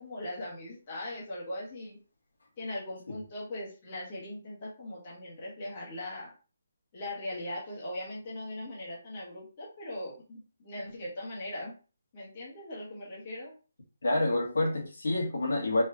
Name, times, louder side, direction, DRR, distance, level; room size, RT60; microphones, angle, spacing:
voice 1, 0.0-2.0 2.6-6.3 6.9-11.7 12.1-13.5, left 1 dB, 25° left, 1.4 m, -40 dB
voice 2, 14.0-15.8, left 2 dB, 80° left, 1.7 m, -28 dB
4.4 x 3.1 x 2.5 m
hypercardioid pair, 180°, 0 cm